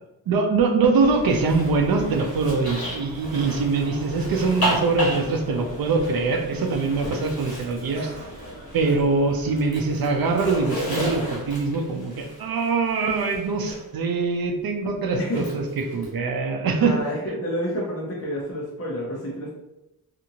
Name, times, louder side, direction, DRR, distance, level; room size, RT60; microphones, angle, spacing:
voice 1, 0.3-8.1 8.7-17.0, right 4 dB, 80° right, 4 dB, 0.5 m, -23 dB
sound 1, 0.9-11.3, equal, 55° right, 1.4 m, -41 dB
Zipper (clothing), 1.2-9.1 9.4-13.8 15.2-16.1, equal, 80° left, 1.1 m, -33 dB
voice 2, 15.2-15.5 16.7-19.6, equal, 40° left, -4 dB, 0.6 m, -29 dB
2.7 x 2.5 x 2.8 m, 0.93 s
wide cardioid pair, 175°, 36 cm